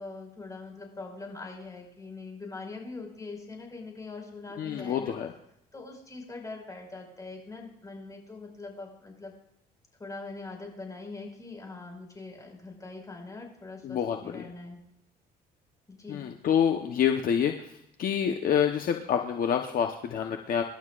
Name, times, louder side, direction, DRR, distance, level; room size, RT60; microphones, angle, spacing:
voice 1, 0.0-5.1 5.7-9.3 10.0-14.8 15.9-16.3, left 3 dB, 20° left, 1 dB, 5.3 m, -42 dB
voice 2, 4.6-5.3 13.8-14.5 16.1-20.6, left 8 dB, 55° left, 4 dB, 1.0 m, -27 dB
26.5 x 12.0 x 2.5 m, 0.79 s
cardioid pair, 110°, 17 cm